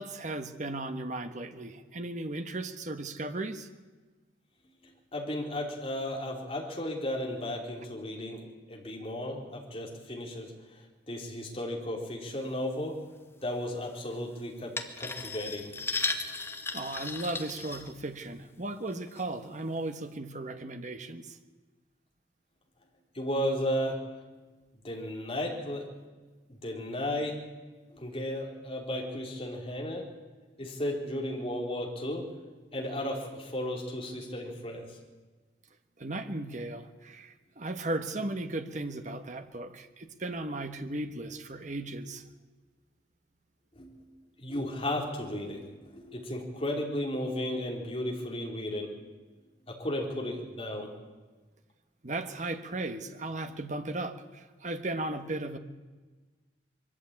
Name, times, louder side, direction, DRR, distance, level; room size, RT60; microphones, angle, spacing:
voice 1, 0.0-3.7 16.7-21.4 36.0-42.2 52.0-55.6, right 2 dB, 45° right, 7 dB, 1.4 m, -36 dB
voice 2, 5.1-10.5 11.1-13.0 13.4-15.7 23.1-24.0 24.8-25.9 26.5-27.4 27.9-30.1 30.6-32.3 32.7-34.9 43.8-44.0 44.4-48.9 49.7-50.9, left 1 dB, 35° left, -1 dB, 3.7 m, -34 dB
sound 1, 14.8-18.4 18.9-19.2 19.8-19.9, left 3 dB, 15° left, 1.3 m, -35 dB
22.0 x 14.0 x 8.9 m, 1.3 s
head